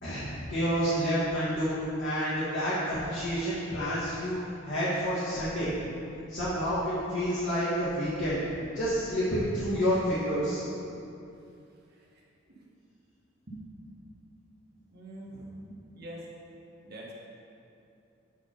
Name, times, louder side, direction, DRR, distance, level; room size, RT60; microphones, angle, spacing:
voice 1, 0.0-4.4 4.6-5.7 6.3-8.4 8.7-10.6, equal, 60° left, -12 dB, 1.8 m, -29 dB
voice 2, 14.9-16.2 16.8-17.1, right 1 dB, 50° right, -4 dB, 1.3 m, -44 dB
8.3 x 3.7 x 5.4 m, 2.6 s
head